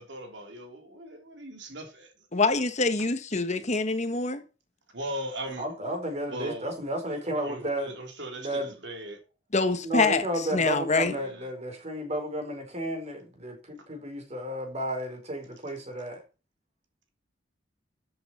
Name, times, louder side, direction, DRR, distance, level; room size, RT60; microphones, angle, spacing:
voice 1, 0.0-2.1 4.9-5.6 6.3-6.8 7.4-9.2 11.2-11.5, right 1 dB, 65° right, 3.4 m, -39 dB
voice 2, 2.3-4.4 9.5-10.2 10.5-11.1, left 3 dB, 40° left, 1.3 m, -25 dB
voice 3, 5.6-8.0 8.4-8.8 9.8-16.2, right 1 dB, 35° right, 4.4 m, -33 dB
13.5 x 8.0 x 4.3 m
head